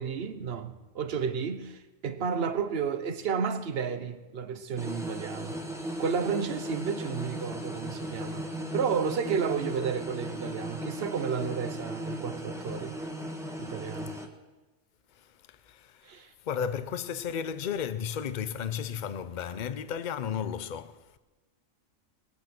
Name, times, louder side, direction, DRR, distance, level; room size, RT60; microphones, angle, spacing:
voice 1, 0.0-5.6 6.0-8.4 8.7-13.0 13.6-14.1 16.0-16.3, right 6 dB, 50° right, 1.1 m, -32 dB
sound 1, 4.8-14.3, equal, ahead, 1.4 m, -37 dB
voice 2, 15.1-21.2, left 8 dB, 45° left, 0.7 m, -34 dB
21.0 x 9.2 x 6.0 m
omnidirectional pair, 1.4 m